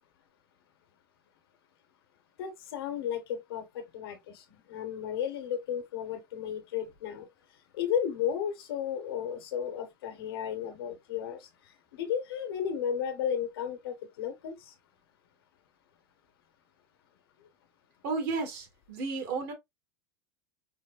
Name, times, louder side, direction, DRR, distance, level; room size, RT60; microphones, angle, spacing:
voice 1, 2.4-7.3 7.8-11.4 12.0-14.5, left 8 dB, 85° left, 1.1 m, -33 dB
voice 2, 18.0-19.5, right 4 dB, 65° right, 1.4 m, -33 dB
4.4 x 2.2 x 2.3 m
supercardioid pair, 120°, 12 cm